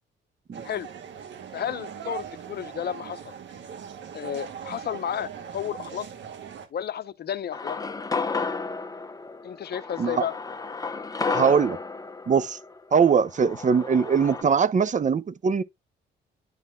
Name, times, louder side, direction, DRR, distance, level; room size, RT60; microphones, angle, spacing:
sound 1, 0.5-6.7, right 8 dB, 65° right, 1.9 m, -40 dB
voice 1, 1.5-3.3 4.1-6.1 6.7-7.8 9.4-10.3, left 9 dB, 55° left, 0.9 m, -32 dB
sound 2, 7.5-14.4, left 4 dB, 20° left, 1.0 m, -32 dB
voice 2, 11.3-11.8 12.3-12.6 12.9-15.6, right 6 dB, 40° right, 0.8 m, -21 dB
10.5 x 4.0 x 2.3 m
cardioid pair, 90°, 20 cm